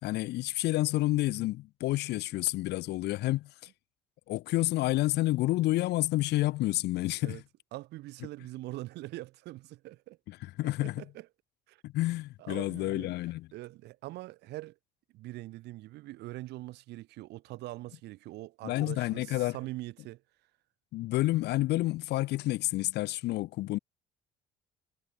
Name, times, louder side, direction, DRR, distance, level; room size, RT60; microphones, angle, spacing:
voice 1, 0.0-3.7 4.3-7.4 10.3-11.0 11.8-13.5 18.6-19.6 20.9-23.8, left 17 dB, 80° left, 3.6 m, -29 dB
voice 2, 7.7-10.2 10.6-11.3 11.7-11.8 12.4-13.1 13.5-14.8 15.1-20.2, right 18 dB, 85° right, 7.4 m, -43 dB
cardioid pair, 110°, 17 cm